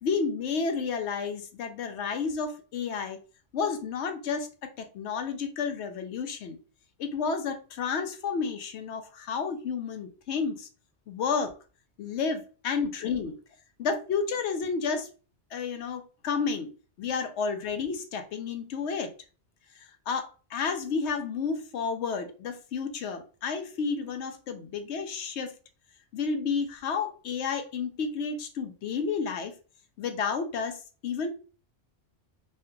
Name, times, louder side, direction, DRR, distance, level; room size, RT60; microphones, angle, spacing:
voice 1, 0.0-3.2 3.5-6.6 7.0-10.7 11.1-11.5 12.0-13.4 13.8-15.1 15.5-16.7 17.0-19.1 19.8-25.5 26.1-29.5 30.0-31.3, left 5 dB, 70° left, 0.9 m, -31 dB
3.3 x 2.8 x 2.2 m
omnidirectional pair, 1.2 m